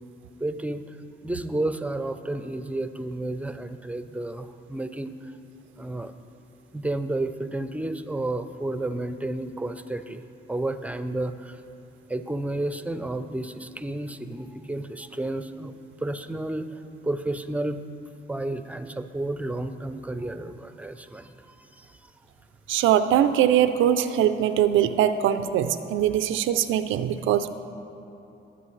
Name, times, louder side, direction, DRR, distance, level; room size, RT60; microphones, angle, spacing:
voice 1, 0.4-1.0 1.2-5.3 5.8-6.1 6.7-10.2 10.5-11.6 12.1-15.7 16.0-17.8 18.3-22.1 26.1-26.2, right 2 dB, 5° right, 10 dB, 0.6 m, -31 dB
voice 2, 22.7-27.5, right 10 dB, 85° right, 11 dB, 0.5 m, -22 dB
21.5 x 7.8 x 3.2 m, 3.0 s
cardioid pair, 90°, 20 cm